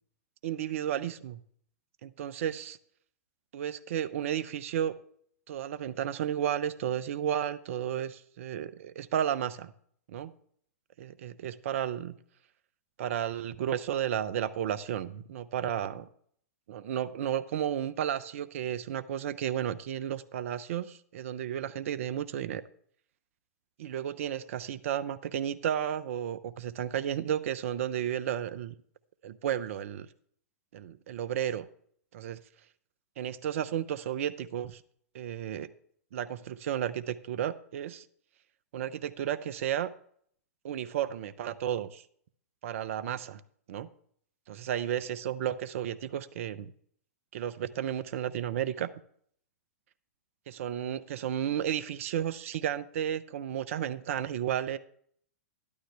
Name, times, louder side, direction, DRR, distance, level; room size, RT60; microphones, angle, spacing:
voice 1, 0.4-1.4 2.0-2.8 3.5-4.9 5.5-9.7 10.1-10.3 11.0-12.2 13.0-16.1 16.7-22.6 23.8-28.7 29.2-30.1 30.7-31.7 32.1-32.4 33.2-34.8 35.1-35.7 36.1-38.0 38.7-39.9 40.6-42.0 42.6-43.4 43.7-43.9 44.5-46.7 47.3-48.9 50.5-54.8, right 10 dB, 60° right, 14 dB, 0.8 m, -33 dB
12.5 x 12.0 x 3.4 m, 0.62 s
hypercardioid pair, 110°, 8 cm